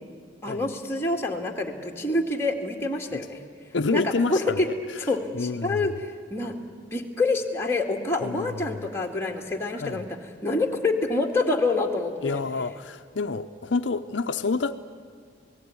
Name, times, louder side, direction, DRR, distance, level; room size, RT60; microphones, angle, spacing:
voice 1, 0.4-3.4 3.9-4.7 5.0-6.6 6.9-10.1 10.4-12.4, left 2 dB, 15° left, 1 dB, 2.1 m, -27 dB
voice 2, 3.7-4.6 5.3-5.9 8.2-8.7 9.7-10.0 12.2-14.7, left 4 dB, 70° left, 8 dB, 0.7 m, -28 dB
27.5 x 18.0 x 9.7 m, 2.1 s
head